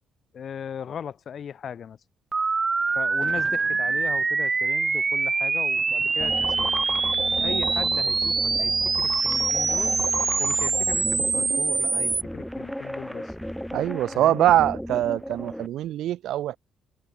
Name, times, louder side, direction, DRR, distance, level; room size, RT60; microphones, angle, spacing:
voice 1, 0.3-2.0 2.9-6.7 7.4-10.0 10.4-13.3 14.1-14.5, left 8 dB, 55° left, 1.1 m, -38 dB
sound 1, 2.3-12.2, right 4 dB, 30° right, 0.5 m, -24 dB
Thunder, 2.8-10.0, right 8 dB, 60° right, 5.5 m, -51 dB
sound 2, 6.2-15.7, equal, ahead, 1.4 m, -35 dB
voice 2, 13.7-16.6, right 13 dB, 80° right, 0.4 m, -23 dB
cardioid pair, 90°, 0 cm